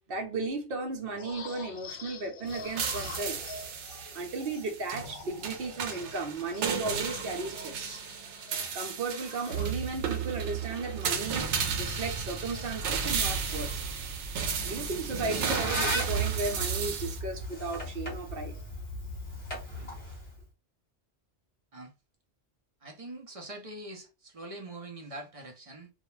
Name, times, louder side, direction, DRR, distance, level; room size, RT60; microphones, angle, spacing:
voice 1, 0.1-3.5 4.1-8.0 8.7-11.5 11.7-13.7 14.6-18.6, right 3 dB, 60° right, 0.9 m, -35 dB
sound 1, 1.2-11.5 11.8-16.7 17.0-17.2 17.5-18.7 19.1-19.5, left 5 dB, 60° left, 0.7 m, -49 dB
sound 2, 2.5-17.2, right 6 dB, 90° right, 0.9 m, -33 dB
Squeak, 14.9-20.4, equal, 25° left, 1.1 m, -37 dB
voice 2, 22.8-25.9, right 1 dB, 40° right, 0.6 m, -43 dB
2.3 x 2.1 x 3.0 m
omnidirectional pair, 1.1 m